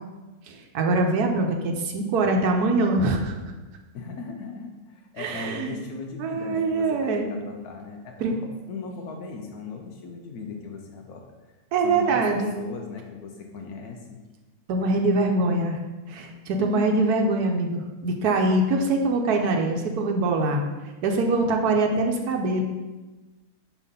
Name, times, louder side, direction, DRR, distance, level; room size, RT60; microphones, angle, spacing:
voice 1, 0.5-3.3 5.2-5.8 6.2-7.3 8.2-8.3 11.7-12.5 14.7-15.8 16.1-20.7 21.0-22.6, right 2 dB, 85° right, 3 dB, 1.2 m, -23 dB
voice 2, 3.9-11.2 11.8-14.2 14.8-15.3 16.5-17.1, left 4 dB, 80° left, 2 dB, 1.2 m, -38 dB
4.9 x 4.0 x 5.3 m, 1.2 s
omnidirectional pair, 1.6 m